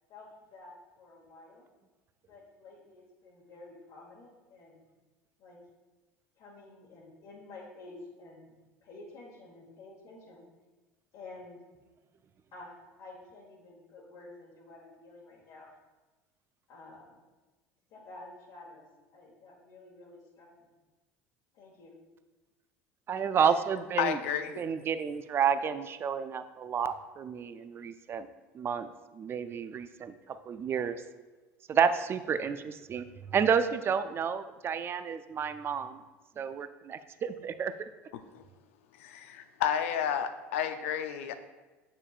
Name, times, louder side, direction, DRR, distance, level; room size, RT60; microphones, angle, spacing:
voice 1, 0.1-1.7 2.3-4.8 5.4-5.6 6.4-8.6 8.8-10.4 11.1-11.6 12.5-15.7 16.7-17.2 17.9-18.8 19.1-20.7 21.5-21.9, left 2 dB, 60° left, -5 dB, 1.3 m, -50 dB
voice 2, 23.1-24.2 24.6-28.3 28.5-30.1 30.5-31.0 31.7-33.1 33.3-36.0 36.4-37.7, right 7 dB, 35° right, 11 dB, 0.4 m, -30 dB
voice 3, 24.0-24.6 38.3-38.4 39.0-41.3, left 9 dB, 80° left, 9 dB, 0.5 m, -31 dB
7.1 x 6.7 x 2.4 m, 1.2 s
hypercardioid pair, 80°, 7 cm